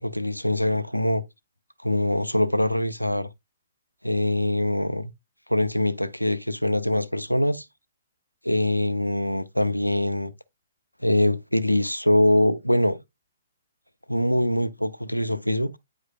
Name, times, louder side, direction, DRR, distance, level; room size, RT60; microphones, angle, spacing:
voice 1, 0.0-1.2 1.8-3.3 4.0-5.1 5.5-7.7 8.4-10.3 11.0-13.0 14.1-15.7, left 1 dB, 90° left, 0.5 m, -23 dB
9.3 x 4.8 x 2.3 m
figure-of-eight pair, 125°, 0 cm